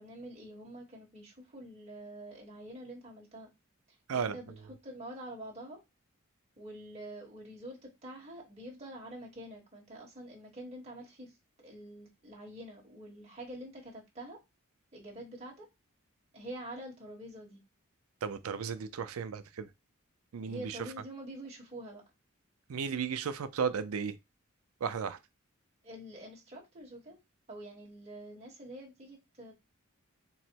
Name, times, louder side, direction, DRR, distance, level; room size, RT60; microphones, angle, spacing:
voice 1, 0.0-3.5 4.1-5.8 6.6-11.3 11.6-14.4 14.9-15.7 16.3-17.6 20.4-22.0 25.8-27.2 27.5-29.5, right 1 dB, 30° right, 1.1 m, -46 dB
voice 2, 18.2-19.7 20.3-20.8 22.7-24.2 24.8-25.2, right 6 dB, 80° right, 0.5 m, -34 dB
3.8 x 2.1 x 4.4 m
head